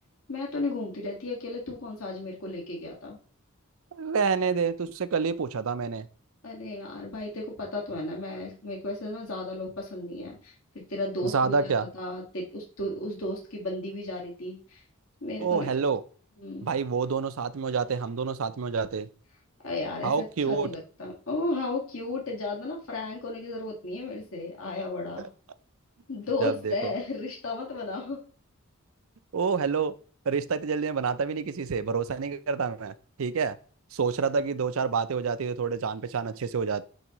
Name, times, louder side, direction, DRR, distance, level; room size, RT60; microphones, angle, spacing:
voice 1, 0.3-3.2 6.4-14.8 15.2-15.7 16.4-16.7 19.6-25.3 26.1-28.3, left 2 dB, 65° left, 1.8 m, -34 dB
voice 2, 3.9-6.1 11.2-11.9 15.4-16.0 16.6-19.1 20.0-20.7 25.2-25.3 26.4-26.9 29.3-29.9 30.3-33.6 33.9-36.8, right 5 dB, 65° right, 0.5 m, -28 dB
9.5 x 3.6 x 3.0 m
head